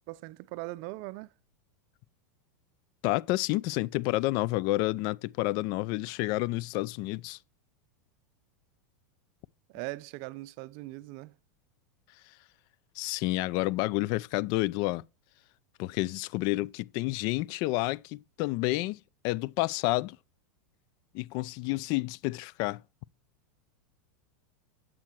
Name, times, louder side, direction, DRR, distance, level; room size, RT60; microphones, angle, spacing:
voice 1, 0.1-1.3 9.7-11.4, right 20 dB, 50° right, 0.5 m, -40 dB
voice 2, 3.0-7.4 13.0-15.0 15.8-20.2 21.1-22.8, left 19 dB, 50° left, 0.4 m, -30 dB
12.0 x 7.6 x 4.6 m
hypercardioid pair, 120°, 9 cm